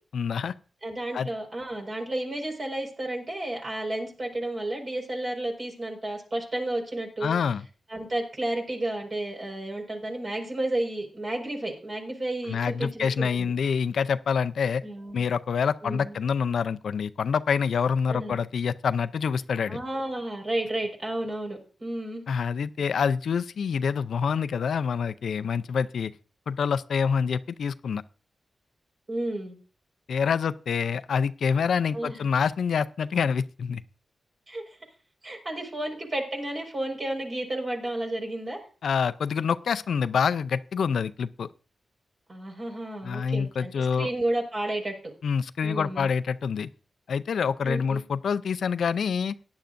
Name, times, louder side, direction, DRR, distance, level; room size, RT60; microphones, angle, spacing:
voice 1, 0.1-0.5 1.1-1.3 7.2-7.6 12.5-14.8 15.1-19.8 22.3-26.1 26.5-28.0 30.1-33.8 38.8-41.5 43.0-44.1 45.2-46.7 47.1-49.3, left 6 dB, 80° left, 13 dB, 0.5 m, -26 dB
voice 2, 0.8-7.3 7.9-13.5 14.8-15.3 15.8-16.1 18.1-18.4 19.7-22.2 29.1-29.6 31.9-32.2 34.5-34.6 35.2-38.6 42.3-45.1 45.6-46.1 47.6-48.0, right 1 dB, 45° right, 1 dB, 4.9 m, -32 dB
17.5 x 10.5 x 2.6 m, 0.36 s
wide cardioid pair, 90°, 0 cm